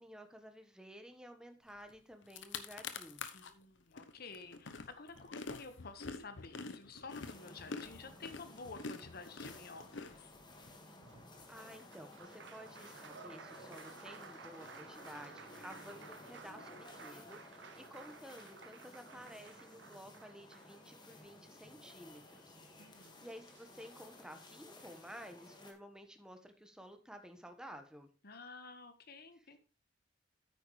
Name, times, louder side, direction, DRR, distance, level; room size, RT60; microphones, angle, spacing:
voice 1, 0.0-3.3 11.5-28.1, equal, 5° right, 7 dB, 1.3 m, -53 dB
sound 1, 1.9-2.0 2.2-3.5 4.0-10.7, left 4 dB, 80° left, 0.9 m, -46 dB
voice 2, 3.3-10.3 22.8-23.3 28.2-29.6, left 4 dB, 55° left, 9 dB, 1.4 m, -52 dB
sound 2, 7.1-25.7, left 2 dB, 25° left, 1.8 m, -56 dB
Applause, 11.0-21.3 22.6-22.7 23.0-24.0, right 5 dB, 70° right, 0.9 m, -55 dB
9.3 x 9.1 x 3.2 m, 0.35 s
head